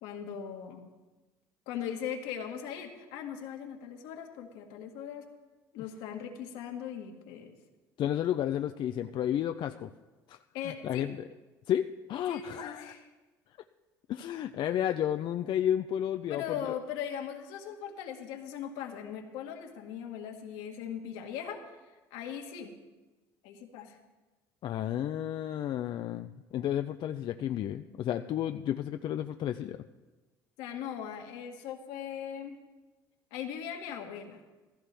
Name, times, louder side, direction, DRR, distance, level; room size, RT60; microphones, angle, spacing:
voice 1, 0.0-0.9 1.7-5.3 5.7-7.5 10.5-11.1 12.3-13.1 16.3-22.8 23.4-24.0 30.6-32.6 33.3-34.4, left 8 dB, 80° left, 3 dB, 1.8 m, -39 dB
voice 2, 8.0-9.9 10.3-10.4 10.8-11.2 11.7-12.9 14.1-16.7 24.6-29.8, left 10 dB, 55° left, 8 dB, 0.5 m, -32 dB
15.5 x 15.0 x 3.5 m, 1.2 s
supercardioid pair, 80°, 10 cm